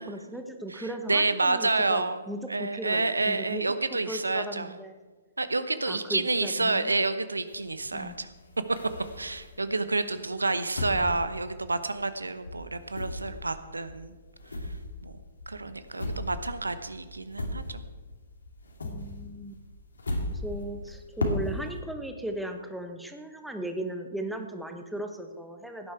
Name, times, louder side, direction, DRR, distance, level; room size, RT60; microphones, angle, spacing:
voice 1, 0.0-3.6 4.1-5.0 5.9-6.9 7.9-8.2 11.0-11.2 18.8-19.6 20.3-25.9, right 1 dB, ahead, 5 dB, 1.1 m, -37 dB
voice 2, 0.7-2.2 2.5-4.7 5.4-8.3 9.2-14.1 14.5-14.8 15.0-15.1 15.5-17.8, right 3 dB, 80° right, 12 dB, 0.9 m, -29 dB
sound 1, 7.5-9.6 10.1-12.2 12.4-18.1 18.4-21.8, left 2 dB, 75° left, 2.6 m, -36 dB
16.5 x 10.0 x 4.6 m, 1.3 s
figure-of-eight pair, 120°, 0 cm